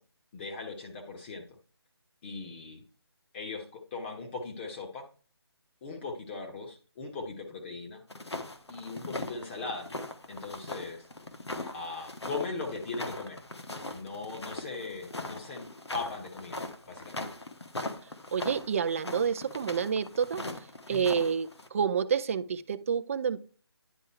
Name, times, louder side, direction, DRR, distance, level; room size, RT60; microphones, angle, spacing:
voice 1, 0.3-1.4 2.2-2.8 3.3-5.1 5.8-8.0 8.7-9.9 10.3-11.0 11.7-13.4 13.9-17.2 20.9-21.1, left 3 dB, 25° left, 1.2 m, -39 dB
sound 1, 8.1-21.7, left 2 dB, 85° left, 1.5 m, -40 dB
voice 2, 18.0-23.4, right 7 dB, 30° right, 0.5 m, -29 dB
10.0 x 3.6 x 4.3 m
figure-of-eight pair, 155°, 14 cm